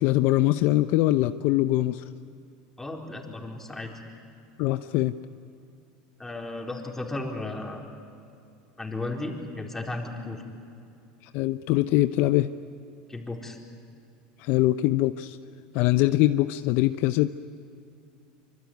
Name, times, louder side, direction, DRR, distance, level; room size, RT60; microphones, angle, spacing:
voice 1, 0.0-2.0 4.6-5.1 11.3-12.5 14.4-15.4 15.7-17.3, left 16 dB, 60° left, 11 dB, 0.7 m, -22 dB
voice 2, 2.8-3.9 6.2-7.8 8.8-10.4 13.1-13.6, left 2 dB, 10° left, 0 dB, 4.2 m, -34 dB
25.0 x 25.0 x 9.6 m, 2.6 s
supercardioid pair, 115°, 4 cm